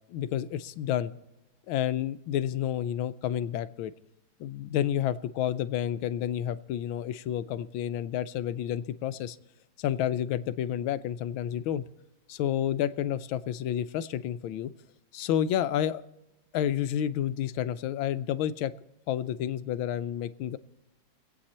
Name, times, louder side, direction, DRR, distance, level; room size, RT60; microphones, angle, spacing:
voice 1, 0.1-1.1 1.7-3.9 4.4-9.4 9.8-11.8 12.3-14.7 15.1-16.0 16.5-18.7 19.1-20.6, left 10 dB, 85° left, 13 dB, 1.4 m, -30 dB
25.5 x 8.6 x 4.3 m, 0.98 s
omnidirectional pair, 2.2 m